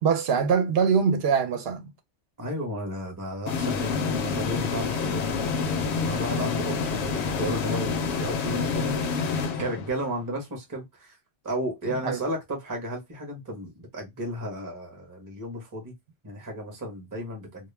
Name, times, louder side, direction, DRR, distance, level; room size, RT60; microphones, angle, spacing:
voice 1, 0.0-1.9 11.9-12.2, right 6 dB, 65° right, 0.8 m, -23 dB
voice 2, 2.4-11.2 11.4-15.9 16.2-17.7, equal, 20° right, 0.7 m, -33 dB
sound 1, 3.5-10.2, left 5 dB, 70° left, 0.8 m, -28 dB
2.3 x 2.0 x 3.1 m
omnidirectional pair, 1.2 m